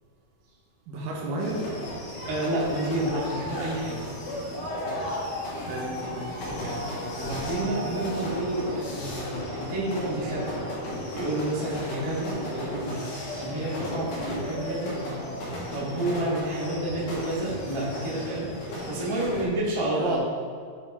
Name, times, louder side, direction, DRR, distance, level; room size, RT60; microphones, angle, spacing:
voice 1, 0.9-1.7 5.6-6.4 19.9-20.2, right 2 dB, 70° right, -2 dB, 2.6 m, -33 dB
sound 1, 1.4-19.4, left 1 dB, 75° left, 4.0 m, -34 dB
voice 2, 2.3-4.0 6.5-6.7 7.1-10.6 11.1-13.0 13.4-15.2 15.7-20.2, right 1 dB, 25° right, -8 dB, 0.6 m, -30 dB
9.2 x 5.1 x 4.1 m, 2.1 s
omnidirectional pair, 4.3 m